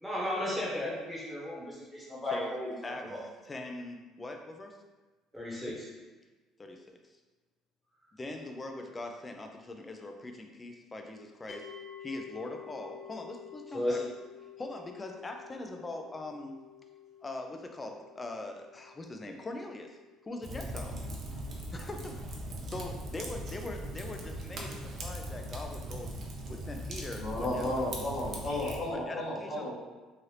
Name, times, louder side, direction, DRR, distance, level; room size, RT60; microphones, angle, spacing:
voice 1, 0.0-3.2 5.3-5.9 13.7-14.0, left 1 dB, ahead, -6 dB, 1.0 m, -34 dB
voice 2, 2.8-4.8 6.6-7.0 8.1-11.7 12.0-14.0 14.6-16.6 17.2-20.0 20.3-21.0 21.7-26.1 26.5-27.7 28.5-29.7, left 2 dB, 20° left, 4 dB, 0.4 m, -42 dB
sound 1, 11.5-22.6, left 9 dB, 75° left, 1.3 m, -52 dB
Fire, 20.4-28.8, right 1 dB, 45° right, 0.5 m, -40 dB
voice 3, 27.2-29.7, left 1 dB, 40° left, -8 dB, 1.3 m, -33 dB
3.2 x 2.5 x 2.8 m, 1.2 s
cardioid pair, 130°, 0 cm